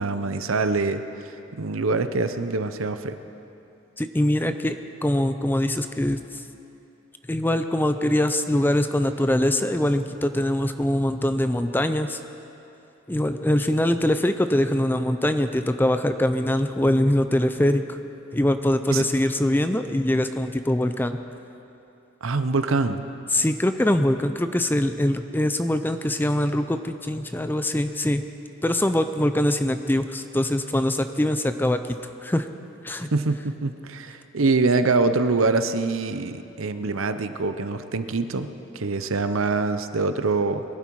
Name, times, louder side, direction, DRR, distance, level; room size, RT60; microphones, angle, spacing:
voice 1, 0.0-3.2 18.9-19.1 22.2-23.0 33.1-40.6, right 3 dB, 85° right, 10 dB, 0.8 m, -24 dB
voice 2, 4.0-4.8 5.0-6.2 7.3-12.2 13.1-18.0 18.3-21.2 23.3-28.2 28.6-32.5 32.8-33.1, left 1 dB, 10° left, 9 dB, 0.5 m, -23 dB
21.5 x 12.0 x 4.7 m, 2.8 s
head